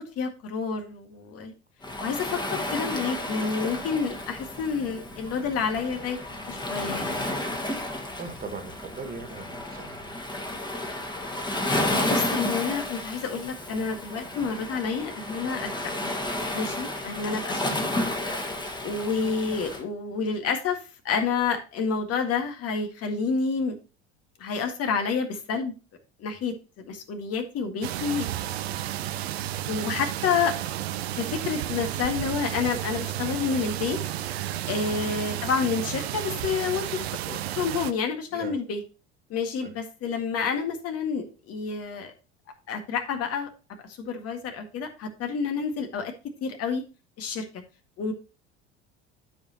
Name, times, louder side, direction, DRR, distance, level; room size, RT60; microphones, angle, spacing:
voice 1, 0.2-1.5 2.0-6.2 6.5-7.2 11.8-15.7 16.0-16.1 16.5-18.1 18.8-23.8 24.4-25.7 26.2-28.3 28.6-29.1 29.7-30.5 31.2-34.0 34.7-38.8 39.3-42.1 42.7-43.5 43.9-46.1 46.4-46.8 47.2-47.4 48.0-48.1, left 5 dB, 45° left, 5 dB, 1.9 m, -29 dB
Waves surf, 1.8-19.8, left 1 dB, 15° left, 1.8 m, -32 dB
voice 2, 8.2-10.2 16.7-16.9 34.8-35.0 38.3-38.5 39.6-39.7, right 4 dB, 30° right, 5 dB, 2.1 m, -40 dB
sound 1, 27.8-37.9, right 13 dB, 70° right, 0.7 m, -32 dB
12.5 x 5.3 x 2.9 m, 0.32 s
figure-of-eight pair, 65°, 33 cm